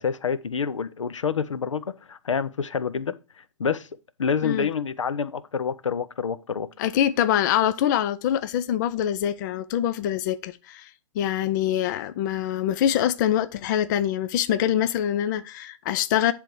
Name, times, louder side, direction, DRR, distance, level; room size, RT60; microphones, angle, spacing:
voice 1, 0.0-3.1 3.6-3.9 4.2-6.7, left 6 dB, 80° left, 0.7 m, -27 dB
voice 2, 6.8-16.3, left 10 dB, 40° left, 0.5 m, -24 dB
10.5 x 3.5 x 4.6 m
figure-of-eight pair, 125°, 16 cm